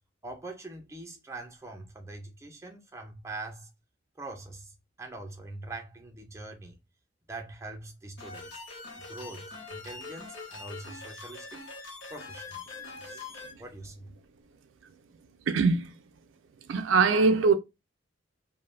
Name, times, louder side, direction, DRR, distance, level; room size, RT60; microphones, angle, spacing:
voice 1, 0.2-3.7 4.2-6.8 7.3-8.6 9.0-11.6 12.1-12.7 13.0-13.2 13.6-14.2, right 2 dB, 15° right, 0.5 m, -43 dB
sound 1, 8.2-13.5, left 3 dB, 65° left, 0.9 m, -43 dB
voice 2, 15.5-15.9 16.7-17.5, right 4 dB, 75° right, 0.4 m, -22 dB
2.3 x 2.1 x 3.1 m
head